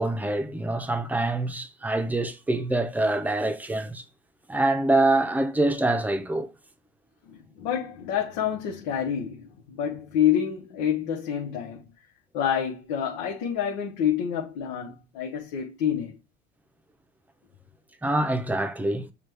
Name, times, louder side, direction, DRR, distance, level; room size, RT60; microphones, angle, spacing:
voice 1, 0.0-4.0 4.5-6.5 18.0-19.1, right 2 dB, 10° right, 0.7 m, -25 dB
voice 2, 7.3-11.8 12.3-16.2, left 9 dB, 90° left, 0.9 m, -28 dB
6.0 x 2.4 x 3.4 m
cardioid pair, 110°, 18 cm